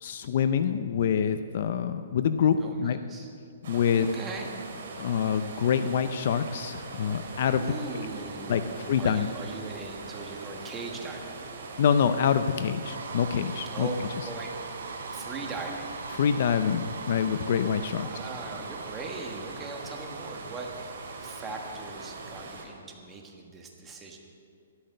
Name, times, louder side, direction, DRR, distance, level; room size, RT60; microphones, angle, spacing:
voice 1, 0.0-3.0 3.7-4.1 5.0-7.6 8.5-8.6 8.9-9.3 11.8-13.9 16.2-18.1, left 7 dB, 45° left, 10 dB, 0.5 m, -26 dB
voice 2, 2.6-3.3 3.9-4.5 7.6-11.4 13.7-13.9 14.2-14.7 15.1-16.0 17.9-24.2, right 3 dB, 10° right, 1 dB, 1.4 m, -40 dB
sound 1, 3.6-22.7, right 3 dB, 55° right, 3.2 m, -42 dB
sound 2, 12.8-23.1, right 4 dB, 85° right, 2.5 m, -43 dB
13.0 x 12.0 x 6.5 m, 2.2 s
hypercardioid pair, 170°, 0 cm